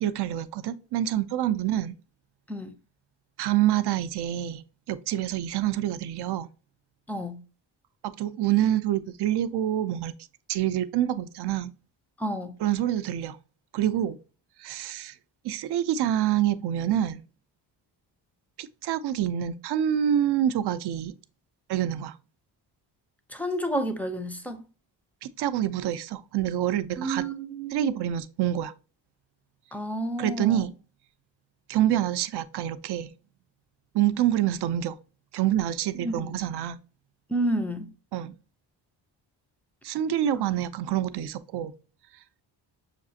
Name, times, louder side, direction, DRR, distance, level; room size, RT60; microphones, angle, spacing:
voice 1, 0.0-2.0 3.4-6.5 8.0-10.1 10.5-11.7 12.6-13.4 13.7-14.2 14.6-15.1 15.4-17.2 18.6-21.1 21.7-22.1 25.2-27.2 27.7-28.7 30.2-30.7 31.7-33.1 33.9-35.0 35.3-36.8 38.1-38.3 39.8-41.7, right 11 dB, 65° right, 0.5 m, -26 dB
voice 2, 7.1-7.4 12.2-12.5 23.3-24.6 27.0-27.9 29.7-30.6 35.9-36.4 37.3-37.9 40.3-40.4, right 1 dB, 5° left, 0.4 m, -30 dB
6.5 x 2.4 x 2.7 m
cardioid pair, 115°, 44 cm